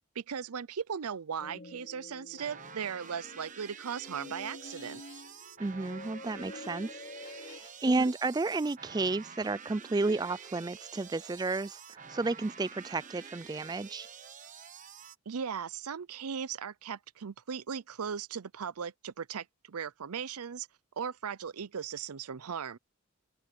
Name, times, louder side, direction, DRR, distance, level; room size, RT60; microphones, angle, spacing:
voice 1, 0.2-5.0 8.0-8.1 15.3-20.7 21.0-22.8, right 7 dB, 85° right, 0.6 m, -38 dB
sound 1, 1.4-7.6, left 2 dB, 45° left, 3.6 m, -48 dB
sound 2, 2.4-15.2, right 6 dB, 35° right, 1.2 m, -49 dB
sound 3, 2.8-3.3 4.5-5.3 7.1-7.8, left 9 dB, 85° left, 4.2 m, -59 dB
voice 2, 5.6-14.1, right 3 dB, 20° right, 0.3 m, -32 dB
open air
head